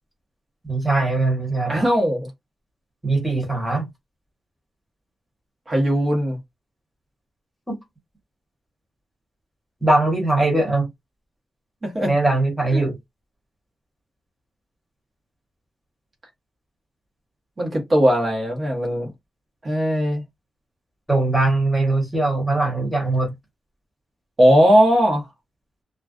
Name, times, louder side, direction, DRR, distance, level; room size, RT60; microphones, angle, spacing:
voice 1, 0.6-1.8 3.0-3.9 7.7-7.8 9.8-10.9 12.0-13.0 21.1-23.3, right 2 dB, ahead, 1.1 m, -21 dB
voice 2, 1.7-2.3 5.7-6.4 11.8-12.1 12.7-12.8 17.6-19.1 19.6-20.2 24.4-25.3, equal, 35° right, 1.1 m, -18 dB
2.4 x 2.2 x 2.4 m
wide cardioid pair, 125°, 0 cm